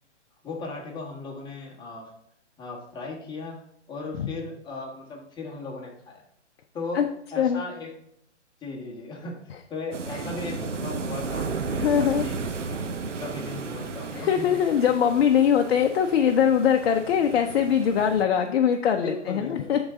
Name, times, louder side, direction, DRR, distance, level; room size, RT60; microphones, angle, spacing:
voice 1, 0.4-2.1 2.6-6.2 6.7-7.9 8.6-9.4 9.7-12.8 13.2-14.5 19.0-19.7, left 3 dB, 10° left, -3 dB, 1.5 m, -37 dB
sound 1, 9.9-18.2, right 4 dB, 90° right, 0.9 m, -34 dB
voice 2, 11.8-12.3 14.1-19.8, left 8 dB, 60° left, 4 dB, 0.7 m, -22 dB
10.5 x 4.0 x 3.7 m, 0.71 s
hypercardioid pair, 140°, 36 cm